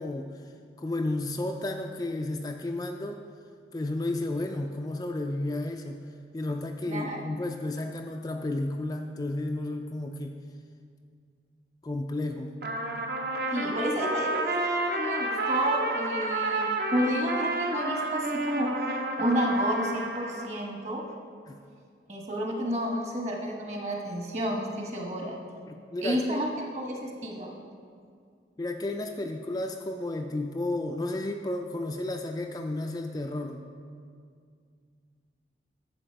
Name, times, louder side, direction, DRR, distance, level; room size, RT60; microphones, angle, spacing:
voice 1, 0.0-3.2 3.7-6.0 6.3-10.4 11.8-12.6 21.5-21.6 25.7-26.4 28.6-33.6, left 2 dB, 20° left, 3 dB, 0.3 m, -32 dB
voice 2, 6.9-7.4 13.5-14.5 14.9-21.0 22.1-25.4 26.0-26.5 26.7-27.5, equal, 40° right, 0 dB, 1.3 m, -30 dB
Trumpet, 12.6-20.5, right 2 dB, 55° right, 0.8 m, -30 dB
10.0 x 7.1 x 4.5 m, 2.2 s
head